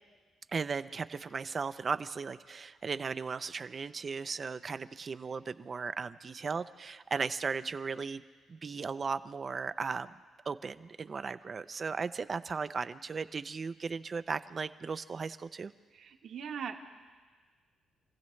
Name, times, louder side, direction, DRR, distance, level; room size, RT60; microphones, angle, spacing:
voice 1, 0.5-8.2 8.5-10.2 10.5-15.7, right 5 dB, 40° right, 12 dB, 0.5 m, -36 dB
voice 2, 15.9-16.8, right 7 dB, 65° right, 4 dB, 1.3 m, -40 dB
28.0 x 15.5 x 3.2 m, 1.5 s
cardioid pair, 90°, 0 cm